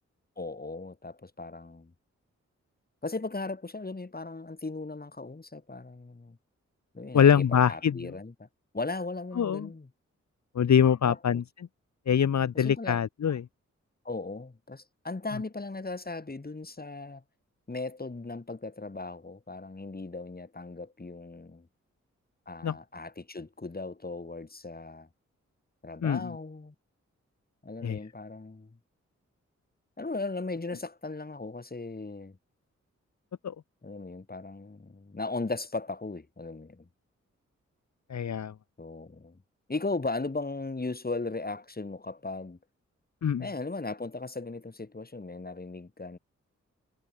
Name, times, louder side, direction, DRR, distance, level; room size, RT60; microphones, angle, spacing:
voice 1, 0.4-1.9 3.0-6.4 6.9-8.5 8.7-9.9 11.0-11.4 12.5-13.0 14.0-17.2 17.7-21.7 22.5-25.1 25.8-26.7 27.6-28.8 30.0-32.4 33.8-36.9 38.8-39.4 39.7-42.6 43.4-46.2, left 3 dB, 30° left, 5.7 m, -37 dB
voice 2, 7.1-8.1 9.4-9.7 10.5-11.4 12.1-13.4 22.6-22.8 26.0-26.3 27.8-28.0 33.4-33.5 38.1-38.5 43.2-43.4, left 8 dB, 70° left, 1.6 m, -24 dB
cardioid pair, 50°, 29 cm